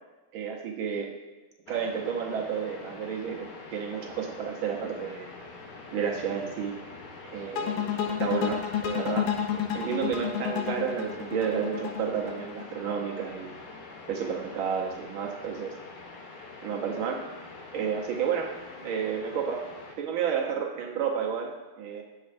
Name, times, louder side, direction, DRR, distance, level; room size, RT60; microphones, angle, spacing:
voice 1, 0.3-1.1 1.7-5.3 5.9-6.7 7.2-13.5 14.1-15.7 16.6-17.2 17.7-18.5 18.8-19.6 20.0-22.0, right 7 dB, 70° right, 0 dB, 1.6 m, -31 dB
sound 1, 1.7-20.0, left 3 dB, 70° left, 1.7 m, -45 dB
sound 2, 7.6-12.7, left 9 dB, 90° left, 1.7 m, -30 dB
8.4 x 7.4 x 2.5 m, 1.2 s
omnidirectional pair, 2.4 m